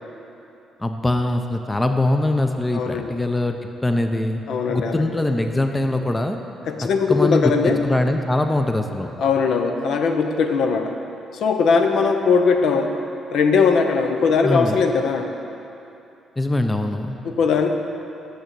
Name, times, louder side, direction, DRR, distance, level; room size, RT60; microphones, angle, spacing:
voice 1, 0.8-4.4 4.7-6.4 7.1-7.5 7.8-9.1 14.4-14.9 16.4-17.2, left 2 dB, 15° left, 6 dB, 0.5 m, -22 dB
voice 2, 2.7-3.1 4.5-5.0 6.7-7.8 9.2-10.9 11.3-12.9 13.3-15.3 17.2-17.7, left 5 dB, 70° left, 5 dB, 0.6 m, -19 dB
6.3 x 6.2 x 6.8 m, 2.8 s
cardioid pair, 90°, 0 cm